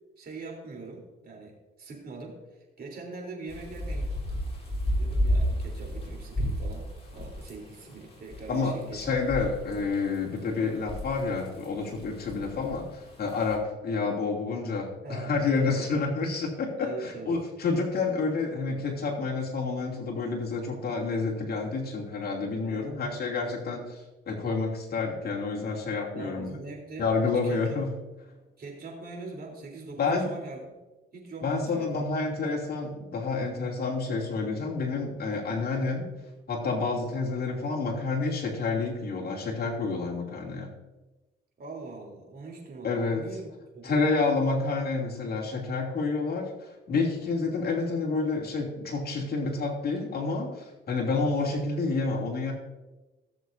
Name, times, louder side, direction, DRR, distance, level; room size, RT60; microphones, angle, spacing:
voice 1, 0.2-2.4 2.8-4.0 5.0-6.9 7.1-9.1 15.0-15.9 16.8-17.4 22.7-23.0 26.1-27.1 27.4-27.8 28.6-30.6 31.1-32.0 41.6-44.1 47.0-47.4, right 3 dB, 50° right, 0 dB, 3.6 m, -42 dB
sound 1, 3.5-13.6, equal, 30° left, 3.7 m, -32 dB
voice 2, 8.5-26.6 27.0-27.9 30.0-30.3 31.4-36.1 36.5-40.7 42.8-43.2 43.8-52.5, left 4 dB, 50° left, -2 dB, 2.8 m, -29 dB
17.5 x 7.3 x 2.7 m, 1.1 s
cardioid pair, 90°, 20 cm